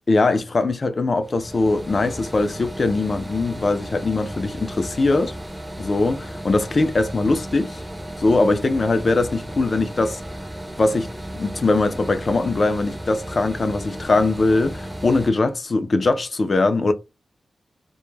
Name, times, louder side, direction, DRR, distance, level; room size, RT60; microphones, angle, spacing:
voice 1, 0.1-5.3 5.8-6.2 6.4-7.8 8.2-10.2 10.8-16.9, left 3 dB, 40° left, 0.4 m, -21 dB
sound 1, 1.2-15.3, right 1 dB, 10° right, 0.5 m, -35 dB
2.1 x 2.0 x 3.1 m
wide cardioid pair, 165°, 0 cm